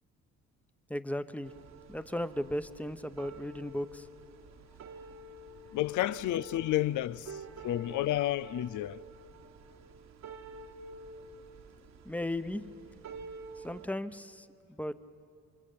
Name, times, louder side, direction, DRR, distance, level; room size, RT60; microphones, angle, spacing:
voice 1, 0.9-1.5 1.9-4.1 12.0-12.6 13.6-15.0, left 1 dB, 5° left, 1.0 m, -36 dB
sound 1, 1.4-13.9, right 3 dB, 60° right, 1.5 m, -49 dB
voice 2, 5.7-9.0, left 14 dB, 80° left, 0.6 m, -31 dB
29.0 x 23.0 x 8.6 m
cardioid pair, 90°, 30 cm